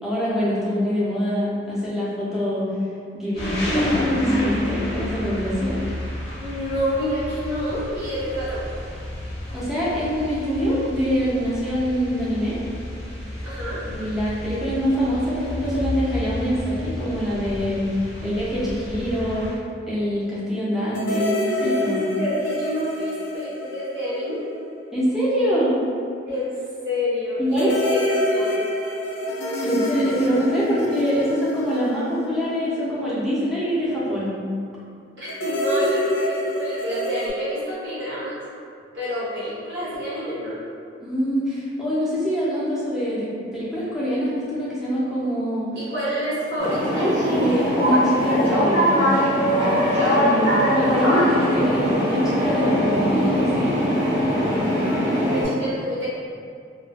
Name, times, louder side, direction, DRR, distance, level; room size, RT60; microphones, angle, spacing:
voice 1, 0.0-2.7 3.1-5.8 9.5-12.6 13.9-19.5 19.9-22.0 24.9-25.8 27.4-27.7 29.6-34.3 41.0-45.7 47.3-49.2 49.8-53.9, equal, ahead, -9 dB, 0.6 m, -24 dB
sound 1, 3.4-19.5, left 1 dB, 35° left, 0.7 m, -31 dB
voice 2, 6.4-8.6 13.4-13.8 21.8-24.4 26.3-26.5 26.8-28.0 28.2-28.6 35.2-38.3 38.9-40.6 45.7-46.9 55.2-56.1, equal, 70° right, -10 dB, 1.0 m, -28 dB
sound 2, 20.9-24.7 25.0-25.1 27.5-32.9 35.3-37.3, left 1 dB, 80° left, 0.3 m, -26 dB
sound 3, 46.6-55.5, equal, 85° right, 1.3 m, -21 dB
2.4 x 2.3 x 2.3 m, 2.3 s
head